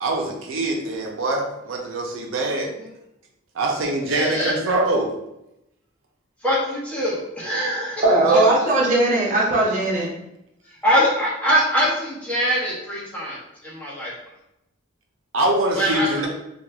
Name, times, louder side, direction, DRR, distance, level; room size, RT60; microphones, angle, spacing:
voice 1, 0.0-2.7 3.6-5.2 8.0-8.5 15.3-16.3, right 2 dB, 75° right, 0 dB, 0.5 m, -23 dB
voice 2, 4.1-4.5 6.4-8.0 10.8-13.4 13.8-14.1 15.7-16.3, equal, 5° left, -6 dB, 0.7 m, -22 dB
voice 3, 8.0-10.1, right 2 dB, 40° right, -4 dB, 0.7 m, -19 dB
3.0 x 2.2 x 2.3 m, 0.85 s
head